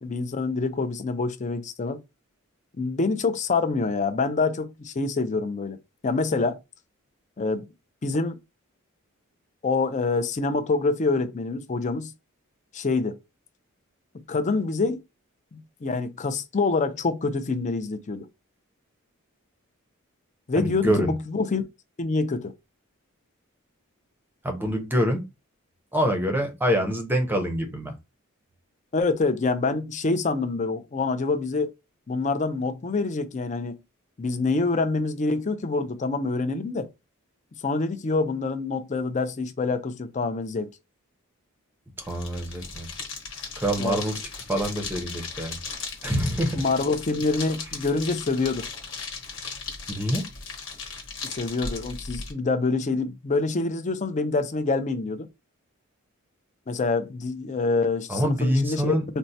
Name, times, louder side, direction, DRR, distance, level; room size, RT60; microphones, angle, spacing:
voice 1, 0.0-2.0 2.8-5.8 6.0-6.6 7.4-7.6 8.0-8.4 9.6-12.1 12.7-13.2 14.3-15.0 15.5-18.2 20.5-21.6 22.0-22.5 28.9-31.7 32.1-33.8 34.2-36.9 37.6-40.7 43.8-44.0 46.6-48.6 51.2-55.3 56.7-59.0, left 3 dB, 35° left, 0.4 m, -26 dB
voice 2, 20.5-21.1 24.4-25.2 25.9-27.9 42.0-42.9 43.6-44.2 44.5-45.6 46.0-46.6 49.9-50.2 58.1-59.0, equal, 10° right, 0.6 m, -25 dB
sound 1, 42.0-52.3, left 4 dB, 60° left, 1.1 m, -37 dB
4.3 x 2.1 x 2.7 m
head